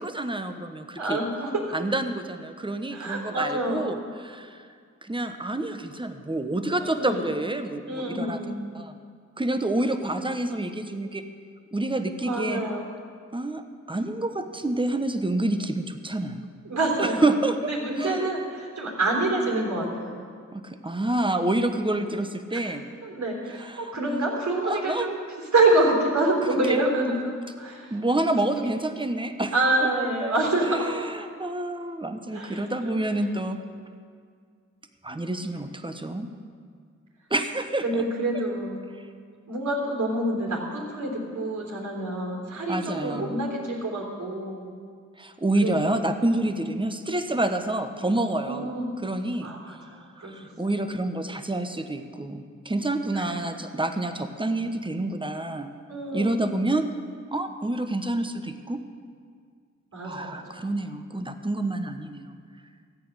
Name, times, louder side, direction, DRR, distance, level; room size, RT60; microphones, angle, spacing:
voice 1, 0.0-1.2 1.7-4.6 5.0-8.4 8.7-8.9 9.4-11.3 11.7-12.6 13.3-16.5 17.0-17.7 18.0-18.3 20.5-22.8 23.6-24.3 24.7-25.1 26.7-26.8 27.9-29.5 30.2-30.3 30.7-33.6 35.0-36.3 37.3-37.8 42.7-43.4 45.2-48.7 49.0-49.5 50.2-55.7 56.1-56.9 57.3-58.8 60.0-62.3, right 2 dB, 15° right, 7 dB, 1.2 m, -28 dB
voice 2, 1.0-1.6 2.9-4.1 6.8-7.3 7.9-8.5 9.9-10.0 12.2-12.9 16.6-17.2 17.7-20.2 22.5-22.6 23.0-25.2 25.5-27.9 28.2-28.3 29.5-30.9 32.3-33.0 37.8-38.8 39.5-44.7 45.6-45.9 48.4-48.9 49.4-50.4 53.1-53.2 55.9-56.5 59.9-60.7, right 2 dB, 65° right, -1 dB, 3.5 m, -27 dB
14.0 x 8.8 x 6.5 m, 2.1 s
cardioid pair, 45°, 30 cm